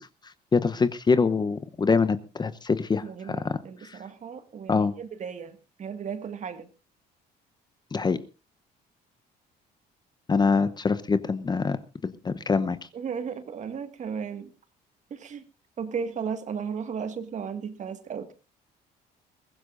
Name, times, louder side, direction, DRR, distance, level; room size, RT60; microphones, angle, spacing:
voice 1, 0.5-4.0 4.7-4.9 7.9-8.2 10.3-11.8 12.0-12.8, left 4 dB, 25° left, 13 dB, 0.8 m, -24 dB
voice 2, 3.0-6.7 12.9-14.5 15.1-15.4 15.8-18.3, right 6 dB, 45° right, 10 dB, 1.8 m, -35 dB
22.5 x 15.0 x 2.6 m, 0.31 s
cardioid pair, 110°, 17 cm